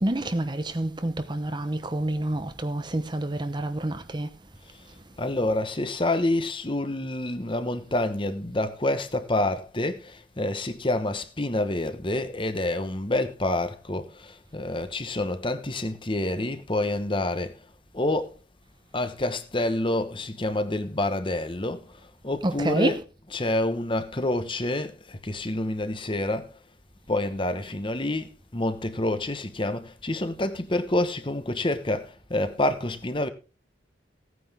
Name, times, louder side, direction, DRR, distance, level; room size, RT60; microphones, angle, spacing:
voice 1, 0.0-4.3 22.4-23.0, right 1 dB, 25° right, 0.9 m, -28 dB
voice 2, 5.2-17.5 17.9-18.3 18.9-21.9 22.2-26.6 27.1-33.3, left 1 dB, 30° left, 1.1 m, -28 dB
16.5 x 9.5 x 3.6 m
head